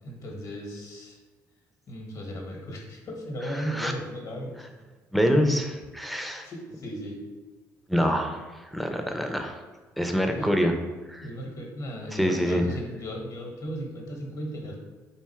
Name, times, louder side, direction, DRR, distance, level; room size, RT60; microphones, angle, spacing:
voice 1, 0.0-1.2 1.9-4.6 6.4-7.2 10.3-10.6 11.2-14.8, equal, 55° left, 1 dB, 1.1 m, -36 dB
voice 2, 3.5-3.9 5.1-6.5 7.9-9.6 10.0-10.7 11.1-11.3 12.1-12.7, equal, ahead, 4 dB, 0.5 m, -26 dB
3.5 x 2.6 x 4.3 m, 1.3 s
supercardioid pair, 75°, 7 cm